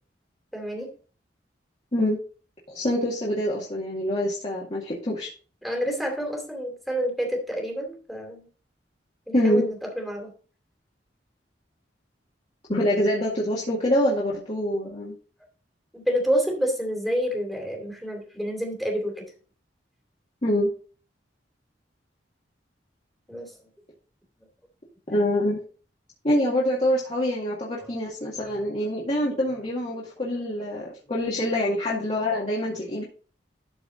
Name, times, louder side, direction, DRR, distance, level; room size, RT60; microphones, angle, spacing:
voice 1, 0.5-0.9 5.6-8.5 9.3-10.3 15.9-19.3 23.3-23.5 27.8-27.9 28.4-28.9 32.2-32.4, equal, ahead, 1 dB, 2.6 m, -29 dB
voice 2, 2.7-5.3 9.3-9.6 12.7-15.1 20.4-20.7 25.1-25.6 26.2-33.0, left 1 dB, 35° left, -6 dB, 2.1 m, -25 dB
12.5 x 4.9 x 3.9 m, 0.39 s
head